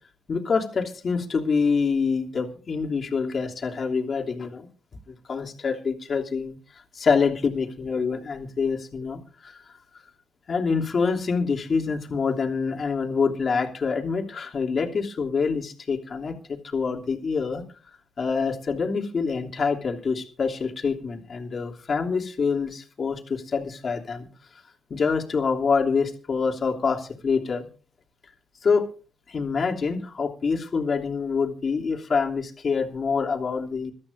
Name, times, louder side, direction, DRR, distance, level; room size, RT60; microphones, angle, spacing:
voice 1, 0.3-4.7 5.1-6.6 6.9-9.6 10.5-17.6 18.2-24.3 24.9-27.7 28.6-28.9 29.3-33.9, left 5 dB, 50° left, 1 dB, 3.0 m, -26 dB
26.0 x 13.0 x 2.7 m, 0.38 s
hypercardioid pair, 45°, 0 cm